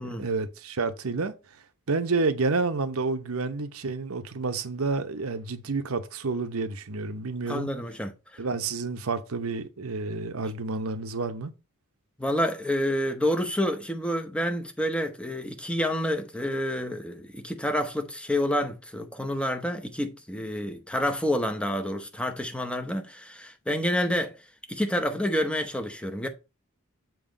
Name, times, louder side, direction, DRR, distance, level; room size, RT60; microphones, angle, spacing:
voice 1, 0.0-1.3 1.9-7.7 8.4-11.5, right 3 dB, 70° right, 0.8 m, -29 dB
voice 2, 7.5-8.1 12.2-24.3 24.7-26.3, equal, 5° left, 0.8 m, -28 dB
7.3 x 3.0 x 5.0 m
head